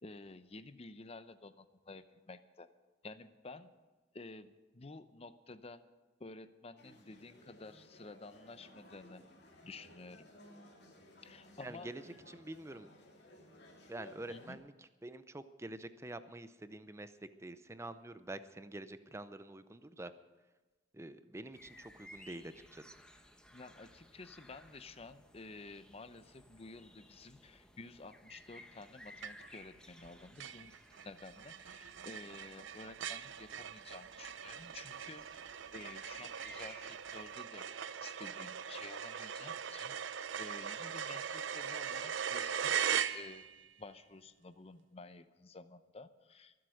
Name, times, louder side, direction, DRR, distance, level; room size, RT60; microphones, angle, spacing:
voice 1, 0.0-2.7 3.0-3.7 4.1-5.8 6.2-9.3 9.6-10.3 11.2-11.9 14.3-14.6 23.5-30.7 31.0-37.7 38.0-43.5 43.8-46.5, left 3 dB, 30° left, 12 dB, 0.7 m, -52 dB
sound 1, 6.8-14.5, left 1 dB, 60° left, 2.8 m, -58 dB
voice 2, 11.6-12.0 12.3-12.9 13.9-17.1 17.4-20.1 20.9-23.0, right 1 dB, 15° right, 12 dB, 0.6 m, -47 dB
sound 2, 21.5-37.3, left 1 dB, 5° left, 1.0 m, -59 dB
sound 3, 29.2-29.7 30.0-30.1 30.4-43.7, right 8 dB, 80° right, 0.6 m, -40 dB
23.5 x 7.8 x 6.4 m, 1.2 s
head